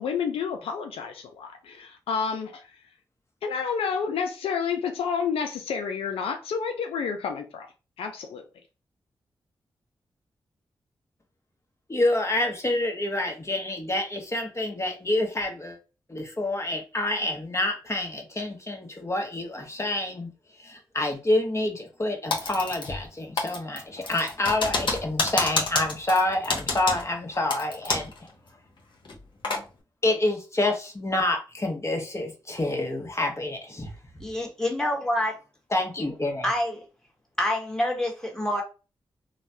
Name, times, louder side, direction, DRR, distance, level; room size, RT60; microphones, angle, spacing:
voice 1, 0.0-2.7 3.4-7.7 8.0-8.4, left 6 dB, 85° left, 0.4 m, -30 dB
voice 2, 11.9-15.8 16.1-20.3 20.6-28.3 30.0-33.9 35.7-36.5, left 2 dB, 30° left, 1.0 m, -27 dB
Typing, 22.3-23.1 23.4-28.2 28.5-28.6 29.1-29.6, left 3 dB, 60° left, 0.9 m, -29 dB
voice 3, 34.2-35.3 36.4-36.8 37.4-38.6, left 1 dB, 5° left, 1.2 m, -27 dB
3.1 x 2.1 x 2.6 m
supercardioid pair, 40°, 9 cm